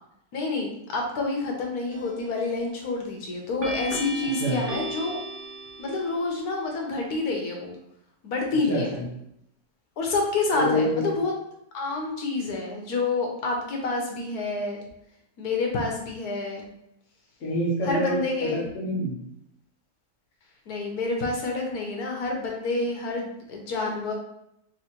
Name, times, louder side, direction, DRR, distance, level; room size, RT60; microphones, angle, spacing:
voice 1, 0.3-5.2 5.8-7.8 8.2-9.0 10.0-11.3 11.7-14.8 15.4-16.6 17.8-18.6 20.7-24.1, left 3 dB, 75° left, 1 dB, 1.3 m, -28 dB
sound 1, 1.9-2.4 3.6-6.4, right 1 dB, 65° right, 1.3 m, -35 dB
voice 2, 4.2-4.6 8.7-9.0 10.5-11.1 17.4-19.2, equal, 55° left, -5 dB, 1.3 m, -27 dB
5.5 x 2.7 x 2.9 m, 0.78 s
omnidirectional pair, 1.7 m